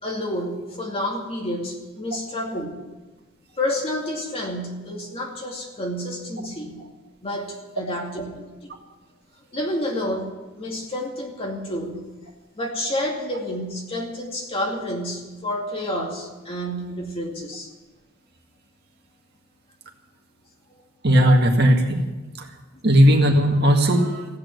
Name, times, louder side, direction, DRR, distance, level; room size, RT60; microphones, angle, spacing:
voice 1, 0.0-2.7 3.6-6.9 7.2-8.8 9.5-12.0 12.6-17.7, left 1 dB, 25° left, 0 dB, 2.4 m, -29 dB
voice 2, 21.0-22.0 22.4-22.5 22.8-24.3, equal, 50° right, 2 dB, 1.8 m, -17 dB
15.5 x 8.8 x 9.4 m, 1.2 s
head